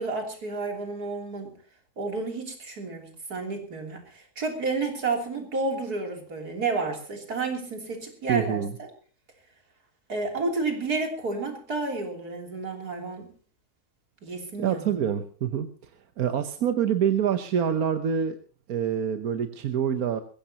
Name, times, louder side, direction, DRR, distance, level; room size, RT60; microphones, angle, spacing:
voice 1, 0.0-1.6 2.0-8.9 10.1-13.3 14.2-15.1, right 3 dB, 90° right, 3 dB, 3.8 m, -31 dB
voice 2, 8.3-8.7 14.6-15.7 16.2-18.3 18.7-20.2, right 8 dB, 75° right, 8 dB, 1.4 m, -26 dB
21.5 x 16.0 x 2.9 m, 0.42 s
omnidirectional pair, 1.6 m